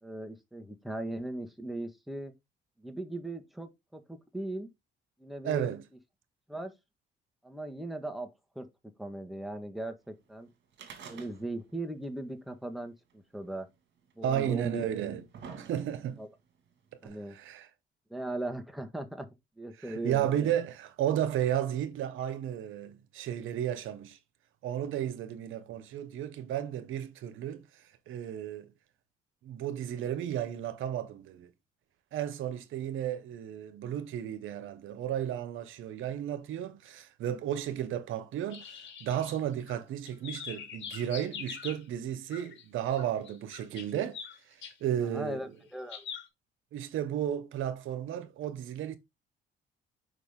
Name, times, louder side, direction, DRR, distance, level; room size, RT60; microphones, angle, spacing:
voice 1, 0.0-2.3 2.8-4.7 5.2-5.7 6.5-6.7 7.4-8.3 8.5-8.7 9.0-10.5 11.1-13.7 14.1-14.9 15.5-15.6 16.2-16.3 17.0-17.4 18.1-19.3 19.6-20.5 45.0-46.0, right 1 dB, ahead, 1.6 m, -38 dB
voice 2, 5.4-5.8 14.2-15.3 15.6-16.2 17.0-17.7 19.8-24.2 24.6-27.7 28.1-28.7 29.4-31.5 32.1-44.2 44.8-45.4 46.7-49.0, right 10 dB, 80° right, 1.1 m, -33 dB
sound 1, 10.7-11.8 12.0-12.1 13.1-13.2 14.1-14.2 14.9-16.2 17.1-17.2, right 6 dB, 65° right, 2.0 m, -47 dB
sound 2, 38.5-39.8 40.1-41.8 42.3-42.6 42.9-44.7 45.9-46.3, left 7 dB, 65° left, 2.2 m, -43 dB
6.2 x 5.2 x 3.7 m
cardioid pair, 90°, 20 cm